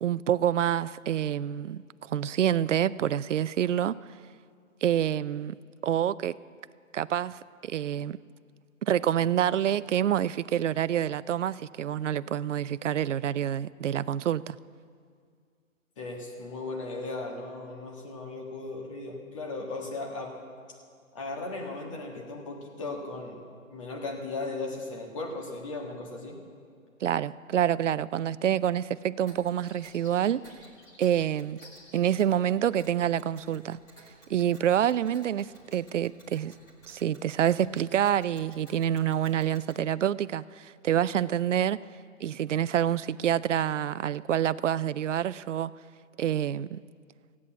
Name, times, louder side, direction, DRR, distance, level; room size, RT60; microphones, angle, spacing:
voice 1, 0.0-1.8 2.1-4.0 4.8-5.6 5.8-6.4 6.9-8.2 8.8-14.6 27.0-30.4 31.0-31.6 31.9-33.8 34.3-36.5 36.9-41.8 42.2-45.7 46.2-46.8, right 10 dB, 65° right, 17 dB, 0.5 m, -27 dB
voice 2, 16.0-20.3 21.1-23.4 23.7-26.4, left 3 dB, 25° left, 0 dB, 1.7 m, -37 dB
sound 1, 29.3-32.1 35.0-35.5, left 2 dB, 70° left, 4.1 m, -56 dB
Tick, 29.3-39.8, right 1 dB, 10° left, 1.2 m, -57 dB
16.5 x 8.5 x 8.7 m, 2.1 s
hypercardioid pair, 165°, 41 cm